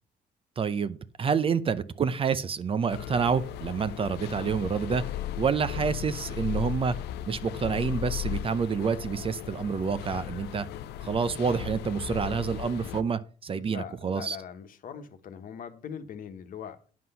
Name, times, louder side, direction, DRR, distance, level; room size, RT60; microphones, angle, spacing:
voice 1, 0.6-5.0 5.4-7.0 7.3-10.7 11.0-14.4, right 6 dB, 35° right, 0.6 m, -28 dB
sound 1, 2.9-13.0, left 12 dB, 80° left, 0.6 m, -36 dB
voice 2, 13.5-16.8, left 8 dB, 55° left, 1.3 m, -41 dB
9.5 x 5.9 x 5.6 m
cardioid pair, 110°, 17 cm